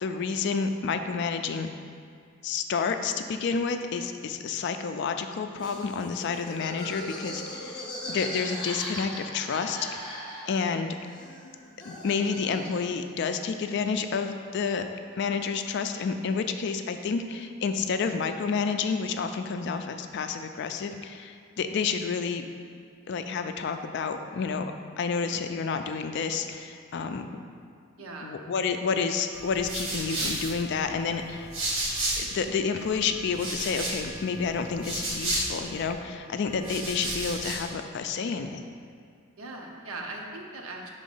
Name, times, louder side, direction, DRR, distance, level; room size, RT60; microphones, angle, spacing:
voice 1, 0.0-1.7 2.4-10.1 10.5-10.9 11.8-14.8 15.2-22.5 23.1-27.4 28.2-31.5 32.2-38.6, left 5 dB, 55° left, 7 dB, 0.3 m, -30 dB
Laughter, 5.6-10.7 11.0-13.0, left 1 dB, 20° left, 1.0 m, -39 dB
voice 2, 28.0-28.3 39.4-40.9, right 2 dB, 85° right, 1 dB, 0.8 m, -39 dB
sound 1, 29.3-32.5 32.8-35.9 36.5-37.7, right 1 dB, 65° right, 1.3 m, -33 dB
5.1 x 3.7 x 5.5 m, 2.2 s
head